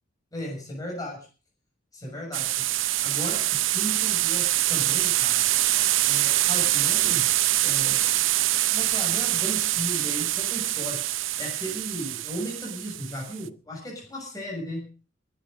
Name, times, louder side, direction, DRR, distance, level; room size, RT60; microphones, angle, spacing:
voice 1, 0.3-1.3 1.9-2.7 3.0-5.4 6.1-7.3 7.6-8.0 8.7-11.0 11.4-14.9, equal, 20° left, -2 dB, 6.7 m, -35 dB
sound 1, 2.3-13.4, right 15 dB, 80° right, 0.8 m, -24 dB
23.0 x 10.5 x 5.1 m, 0.36 s
head